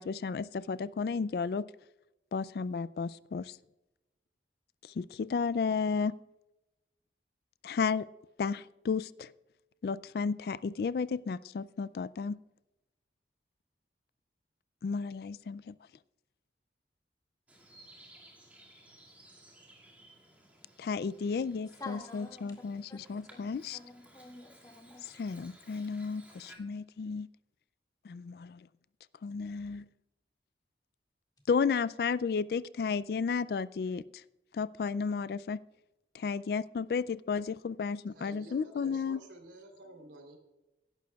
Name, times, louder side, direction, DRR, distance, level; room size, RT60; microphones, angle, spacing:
voice 1, 0.0-1.7 2.3-3.6 4.8-6.2 7.6-8.1 8.4-9.3 9.8-12.4 14.8-15.8 20.8-23.8 25.2-27.3 28.0-28.7 29.2-29.9 31.5-34.0 34.5-35.6 36.1-39.2, left 5 dB, 55° left, 18 dB, 0.3 m, -33 dB
Bird vocalization bird call bird song, 17.5-26.6, right 1 dB, 10° right, 2.1 m, -58 dB
voice 2, 21.8-22.6 22.9-23.5 23.7-25.2, left 3 dB, 20° left, 1 dB, 1.9 m, -48 dB
voice 3, 38.1-40.4, right 1 dB, 85° right, 3 dB, 3.2 m, -51 dB
17.0 x 11.5 x 2.3 m, 0.98 s
head